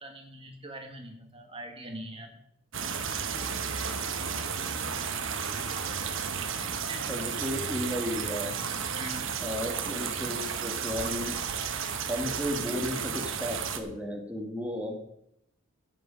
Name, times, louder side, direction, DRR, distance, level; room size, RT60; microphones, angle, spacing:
voice 1, 0.0-2.3 6.6-7.2 9.0-9.3, right 1 dB, 25° right, 3 dB, 1.5 m, -43 dB
sound 1, 2.7-13.8, right 6 dB, 60° right, 1.2 m, -33 dB
voice 2, 7.1-8.5 9.4-11.4 12.1-14.9, left 1 dB, 5° right, 0 dB, 1.6 m, -34 dB
15.5 x 7.8 x 5.1 m, 0.76 s
head